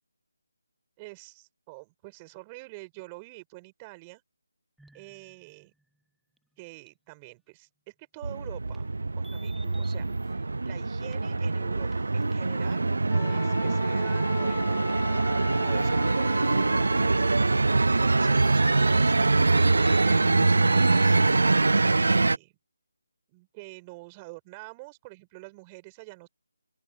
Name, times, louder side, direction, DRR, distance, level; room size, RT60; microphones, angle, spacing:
voice 1, 1.0-4.2 4.9-5.7 6.6-8.9 9.2-10.1 10.6-14.9 15.6-17.6 18.0-21.0 22.0-22.5 23.3-26.3, right 26 dB, 20° right, 6.0 m, -46 dB
sound 1, 4.8-5.8 6.4-6.5 6.9-7.0 8.7-8.9 9.2-11.4 11.9-12.7 14.9-15.0 15.7-16.0 18.4-21.6, right 1 dB, ahead, 1.2 m, -50 dB
sound 2, 8.2-22.4, right 3 dB, 65° right, 0.9 m, -24 dB
Wind instrument woodwind instrument, 13.1-17.4, left 16 dB, 20° left, 1.3 m, -41 dB
open air
figure-of-eight pair, 155°, 0 cm